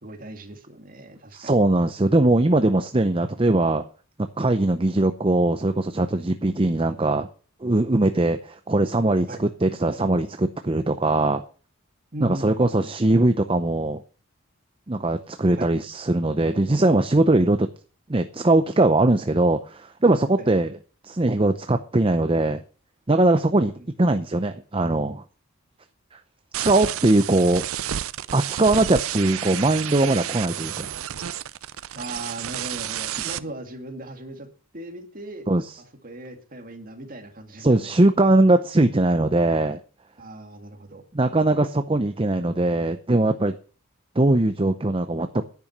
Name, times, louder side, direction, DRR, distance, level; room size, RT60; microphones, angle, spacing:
voice 1, 0.0-1.6 9.3-9.4 12.1-12.9 15.6-15.7 20.4-20.5 23.8-23.9 31.9-34.5 34.7-35.5 35.8-38.0 40.2-41.0, right 1 dB, 40° right, 4 dB, 2.2 m, -38 dB
voice 2, 1.3-3.8 4.2-7.3 7.6-11.4 12.2-14.0 14.9-17.7 18.1-20.7 21.0-22.6 23.1-23.7 24.0-25.2 26.1-26.2 26.5-27.6 28.3-30.9 35.5-35.6 37.6-39.8 41.1-43.5 44.2-45.4, right 2 dB, 25° right, 8 dB, 0.6 m, -21 dB
sound 1, 26.5-33.4, right 11 dB, 75° right, 0.6 m, -31 dB
10.5 x 9.0 x 7.2 m, 0.40 s
head